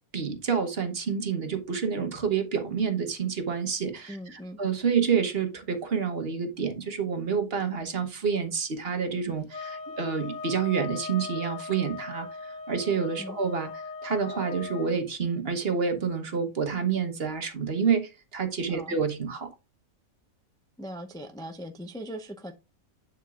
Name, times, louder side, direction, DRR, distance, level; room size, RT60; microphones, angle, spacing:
voice 1, 0.1-19.5, right 6 dB, 45° right, 1.3 m, -28 dB
voice 2, 4.1-4.6 13.2-13.4 18.7-19.0 20.8-22.5, equal, 5° left, 0.3 m, -40 dB
sound 1, 9.5-14.9, left 4 dB, 60° left, 1.2 m, -39 dB
8.1 x 7.3 x 2.4 m
omnidirectional pair, 1.5 m